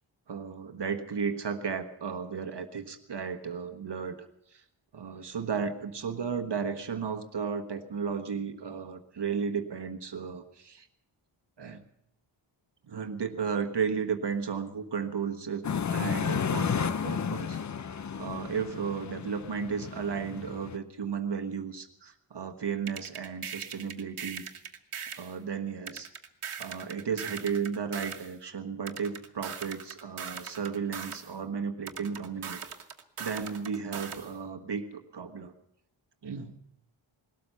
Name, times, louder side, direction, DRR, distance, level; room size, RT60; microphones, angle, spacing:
voice 1, 0.3-4.6 4.9-10.9 11.6-11.9 12.9-15.6 15.9-17.6 18.2-24.4 25.2-26.1 26.6-32.6 33.2-35.5 36.2-36.6, right 6 dB, 55° right, 7 dB, 1.4 m, -34 dB
sound 1, 15.6-20.8, left 7 dB, 35° left, 0.6 m, -32 dB
sound 2, 22.9-25.3 25.9-28.3 28.9-31.3 31.9-34.3, right 7 dB, 80° right, 1.5 m, -40 dB
20.0 x 13.0 x 5.6 m, 0.76 s
wide cardioid pair, 115°, 50 cm